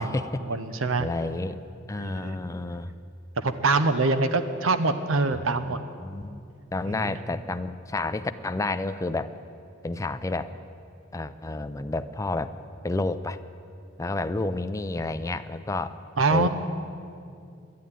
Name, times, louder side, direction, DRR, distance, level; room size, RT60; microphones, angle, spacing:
voice 1, 0.0-1.1 2.0-2.4 3.4-5.8 6.9-7.1 16.2-16.5, right 3 dB, 85° right, 10 dB, 0.9 m, -25 dB
voice 2, 1.0-1.6 1.9-2.9 5.3-5.4 6.0-6.4 6.7-9.3 9.8-10.6 11.1-12.5 12.8-13.4 14.0-16.0 16.3-16.5, left 2 dB, 15° left, 10 dB, 0.4 m, -30 dB
11.0 x 10.5 x 9.8 m, 2.4 s
head